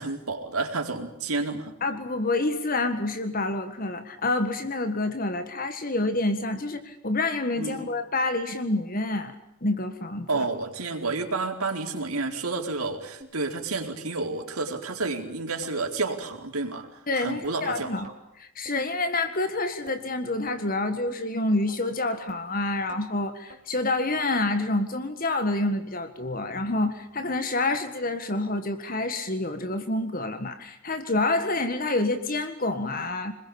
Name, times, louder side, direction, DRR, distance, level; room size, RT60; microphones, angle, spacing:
voice 1, 0.0-1.7 7.6-7.9 10.3-16.9 17.2-17.9, right 3 dB, 85° right, 3 dB, 4.3 m, -30 dB
voice 2, 1.8-9.4 9.6-10.5 17.1-18.1 18.4-33.3, left 2 dB, 40° left, 9 dB, 1.7 m, -28 dB
sound 1, 13.2-13.3 13.8-13.9 14.4-14.5 15.0-15.1 15.6-15.8 16.2-16.3 16.8-16.9 17.4-17.6 18.0-18.2 18.7-18.8 19.3-19.4 19.9-20.0 20.5-20.6 21.1-21.2 21.7-21.8 22.3-22.4 22.9-23.0 23.5-23.6 24.1-24.2 24.7-24.8 25.3-25.4 25.9-26.0, right 2 dB, 35° right, 4.2 m, -48 dB
27.0 x 21.0 x 8.7 m, 0.80 s
head